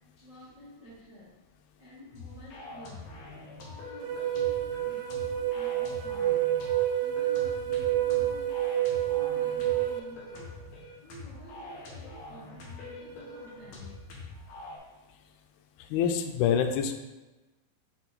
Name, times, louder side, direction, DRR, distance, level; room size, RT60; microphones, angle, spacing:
voice 1, 0.2-1.3 1.8-3.1 3.6-6.4 7.0-10.5 11.0-14.0, left 1 dB, 70° right, -10 dB, 1.0 m, -51 dB
sound 1, 2.1-14.8, left 2 dB, 65° left, 1.8 m, -44 dB
sound 2, 4.0-10.0, right 12 dB, 85° right, 2.6 m, -28 dB
voice 2, 15.9-16.9, left 8 dB, 85° left, 6 dB, 2.6 m, -26 dB
5.9 x 4.6 x 4.1 m, 1.1 s
omnidirectional pair, 4.6 m